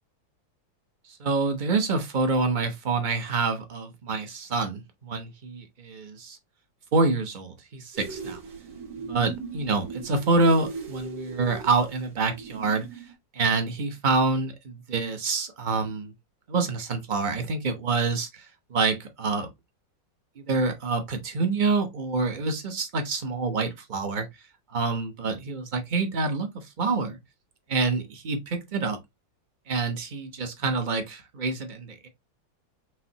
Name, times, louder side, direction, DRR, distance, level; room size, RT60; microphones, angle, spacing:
voice 1, 1.2-6.4 6.9-8.4 9.1-13.0 13.3-16.1 16.5-19.5 20.4-24.3 24.7-27.2 27.7-29.0 29.7-32.1, right 3 dB, 40° right, 0.7 m, -27 dB
sound 1, 7.9-13.1, right 4 dB, 75° right, 2.0 m, -39 dB
6.1 x 2.7 x 2.8 m
omnidirectional pair, 2.0 m